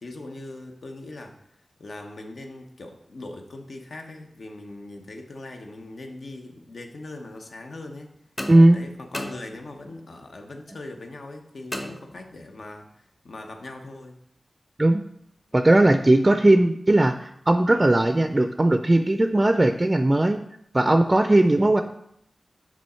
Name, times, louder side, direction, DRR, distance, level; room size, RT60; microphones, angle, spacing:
voice 1, 0.0-1.4 1.8-8.1 8.7-14.2 15.7-15.9 21.5-21.7, left 2 dB, 75° left, 3 dB, 1.0 m, -40 dB
sound 1, 8.4-10.0 11.7-12.7, left 1 dB, 35° left, 1.0 m, -37 dB
voice 2, 8.5-8.8 14.8-15.0 15.5-20.4 20.7-21.8, right 1 dB, 30° right, 8 dB, 0.4 m, -18 dB
6.2 x 5.1 x 4.3 m, 0.71 s
wide cardioid pair, 85°, 0 cm